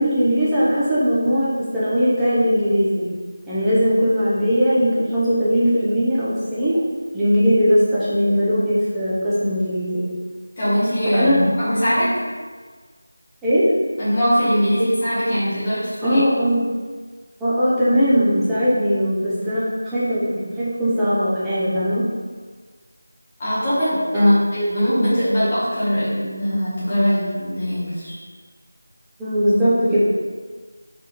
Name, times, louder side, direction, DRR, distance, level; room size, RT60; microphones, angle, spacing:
voice 1, 0.0-3.1 3.5-6.8 7.1-10.1 11.1-11.4 13.4-13.7 16.0-16.6 17.4-22.1 24.1-24.4 29.2-30.0, equal, 5° right, -12 dB, 0.6 m, -19 dB
voice 2, 10.6-12.2 14.0-16.2 23.4-28.1, equal, 15° left, -11 dB, 1.5 m, -21 dB
5.8 x 4.8 x 4.1 m, 1.5 s
figure-of-eight pair, 180°, 0 cm